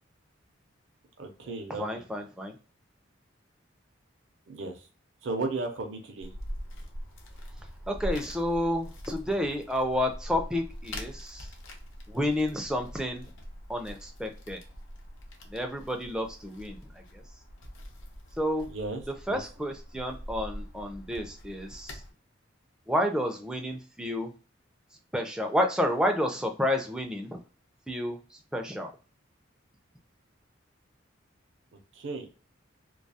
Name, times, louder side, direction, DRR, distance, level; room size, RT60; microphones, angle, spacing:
voice 1, 1.2-2.1 4.5-4.9 5.2-6.3 18.7-19.0 19.3-19.4 31.9-32.3, right 3 dB, 65° right, 3 dB, 0.5 m, -35 dB
voice 2, 1.8-2.5 7.9-11.5 12.1-13.3 13.7-14.6 15.5-17.2 18.4-18.7 19.1-22.0 22.9-24.3 25.1-27.4 27.9-28.9, left 1 dB, 5° right, 4 dB, 0.3 m, -30 dB
sound 1, 6.2-22.1, equal, 70° left, 0.6 m, -43 dB
2.3 x 2.3 x 2.6 m, 0.36 s
head